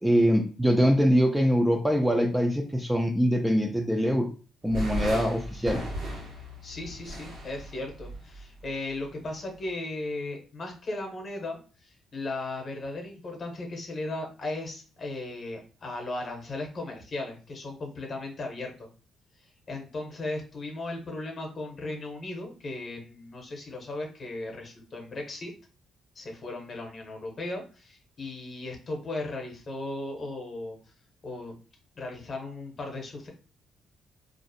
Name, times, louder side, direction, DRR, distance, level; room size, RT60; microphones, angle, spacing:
voice 1, 0.0-4.3 4.6-5.8, equal, 5° right, 3 dB, 0.4 m, -23 dB
sound 1, 4.6-9.1, right 1 dB, 70° right, 1.1 m, -36 dB
voice 2, 6.6-18.9 19.4-25.5 26.1-30.8 31.2-31.6 32.0-33.3, left 2 dB, 45° left, 2 dB, 0.8 m, -36 dB
2.5 x 2.0 x 2.6 m, 0.36 s
cardioid pair, 90°, 0 cm